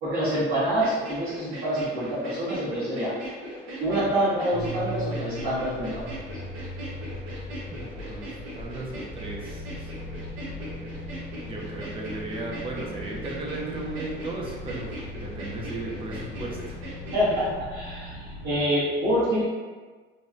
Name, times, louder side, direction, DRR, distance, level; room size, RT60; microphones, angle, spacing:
voice 1, 0.0-3.1 3.8-5.9 17.1-19.5, equal, 65° right, -13 dB, 1.2 m, -26 dB
sound 1, 0.7-17.5, right 1 dB, 85° right, 1.0 m, -40 dB
sound 2, 4.5-18.6, left 1 dB, 65° left, 0.5 m, -38 dB
voice 2, 7.7-9.9 11.4-16.8, right 2 dB, 25° right, -2 dB, 0.5 m, -36 dB
3.3 x 2.2 x 2.5 m, 1.4 s
cardioid pair, 140°, 20 cm